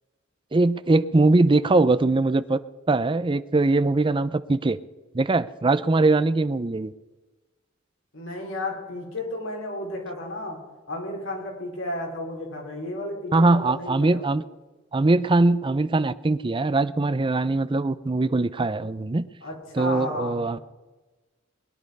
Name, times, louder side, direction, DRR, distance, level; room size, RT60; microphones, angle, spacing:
voice 1, 0.5-2.6 2.9-4.8 5.1-6.9 13.3-14.4 14.9-19.3 19.7-20.6, right 2 dB, 25° right, 15 dB, 0.5 m, -21 dB
voice 2, 8.1-10.6 10.9-14.3 19.4-20.6, left 1 dB, 80° left, -1 dB, 4.6 m, -33 dB
21.0 x 10.5 x 5.3 m, 1.2 s
head